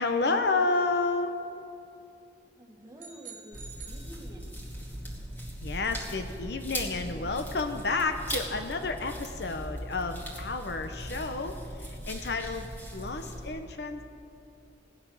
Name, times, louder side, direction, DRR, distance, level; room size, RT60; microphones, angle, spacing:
voice 1, 0.0-1.3 5.6-14.0, left 3 dB, 65° left, 7 dB, 0.9 m, -30 dB
voice 2, 2.6-4.6, right 1 dB, 20° right, 1 dB, 1.6 m, -49 dB
sound 1, 3.0-4.8, right 6 dB, 50° right, 1.1 m, -48 dB
sound 2, 3.5-13.5, equal, 10° left, 2.3 m, -39 dB
16.5 x 9.9 x 6.2 m, 2.7 s
head